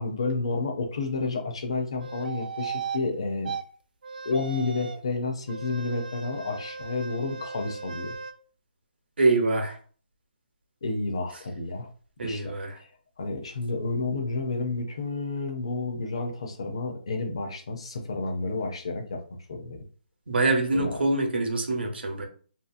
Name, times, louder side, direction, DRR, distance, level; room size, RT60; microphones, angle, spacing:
voice 1, 0.0-3.5 4.2-8.2 10.8-11.9 12.2-12.9 13.2-19.2 19.5-19.8 20.7-21.0, left 3 dB, 35° left, 4 dB, 0.4 m, -30 dB
sound 1, 2.0-3.0 3.4-3.6 4.0-5.1 5.5-8.3, right 6 dB, 55° right, 0.4 m, -37 dB
voice 2, 9.2-9.8 12.2-12.7 20.3-22.3, right 2 dB, 85° right, 4 dB, 0.9 m, -25 dB
2.7 x 2.7 x 2.4 m, 0.42 s
hypercardioid pair, 180°, 5 cm